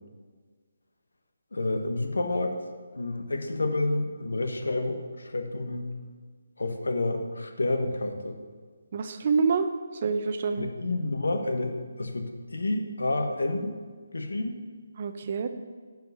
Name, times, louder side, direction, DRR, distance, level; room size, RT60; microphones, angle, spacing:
voice 1, 1.5-2.6 2.9-5.9 6.6-8.3 10.6-13.8 14.1-14.6, left 2 dB, 80° left, 5 dB, 1.2 m, -29 dB
voice 2, 8.9-9.7 10.0-10.7 15.0-15.5, right 5 dB, 40° right, 8 dB, 0.7 m, -26 dB
9.4 x 4.8 x 6.7 m, 1.5 s
figure-of-eight pair, 155°, 0 cm